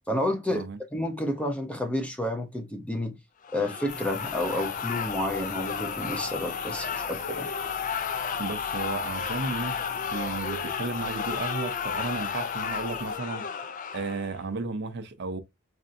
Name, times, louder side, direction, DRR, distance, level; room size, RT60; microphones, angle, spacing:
voice 1, 0.1-0.7 0.9-3.2 3.5-7.5, left 1 dB, 5° left, 0.6 m, -30 dB
sound 1, 3.4-14.4, left 6 dB, 40° left, 0.4 m, -33 dB
sound 2, 3.9-13.2, left 5 dB, 55° left, 1.2 m, -43 dB
voice 2, 8.4-9.8 10.1-13.4 13.9-15.4, right 3 dB, 55° right, 0.5 m, -33 dB
4.2 x 2.6 x 2.5 m
head